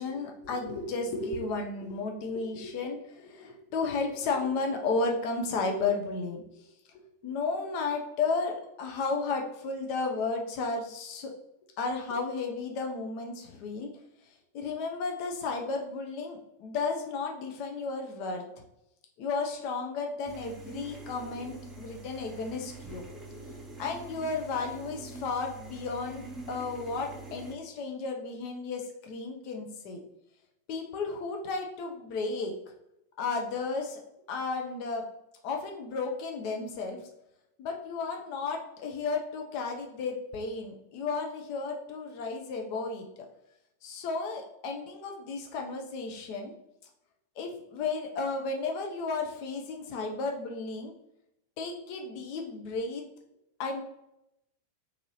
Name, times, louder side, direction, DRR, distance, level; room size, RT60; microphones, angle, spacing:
voice 1, 0.0-6.5 7.2-11.3 11.8-13.9 14.5-18.4 19.2-23.0 23.8-30.0 30.7-32.5 33.2-34.0 34.3-35.1 35.4-37.0 37.6-43.2 43.8-46.5 47.4-50.9 51.6-53.0 53.6-53.8, left 4 dB, 45° left, 2 dB, 0.5 m, -33 dB
sound 1, 20.3-27.6, right 2 dB, 15° right, 0.5 m, -45 dB
2.7 x 2.6 x 2.8 m, 0.82 s
figure-of-eight pair, 90°, 0 cm